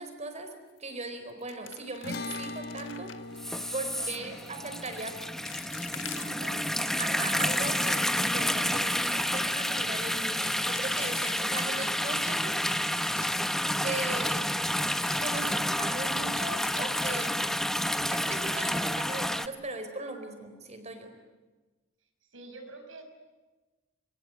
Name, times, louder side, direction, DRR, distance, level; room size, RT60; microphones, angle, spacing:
voice 1, 0.0-3.1 3.7-5.2 7.0-12.6 13.8-14.5 15.2-17.4 18.0-21.1, right 2 dB, 35° right, 7 dB, 4.5 m, -38 dB
sound 1, 0.7-1.0 1.3-3.4 4.0-4.4 5.0-5.1 5.5-6.8 7.2-8.5 8.9-9.0 9.2-9.5 10.2-12.1 12.6-13.6 14.7-15.9 16.2-17.7 18.0-18.1 18.6-18.9, left 10 dB, 70° left, 1.6 m, -47 dB
sound 2, 2.0-8.5, left 2 dB, 55° left, 1.3 m, -43 dB
sound 3, 3.4-19.5, equal, ahead, 0.8 m, -29 dB
voice 2, 4.0-4.4 6.2-6.7 11.5-11.8 22.3-23.3, right 2 dB, 80° right, 5 dB, 5.6 m, -47 dB
26.5 x 23.5 x 9.4 m, 1.2 s
head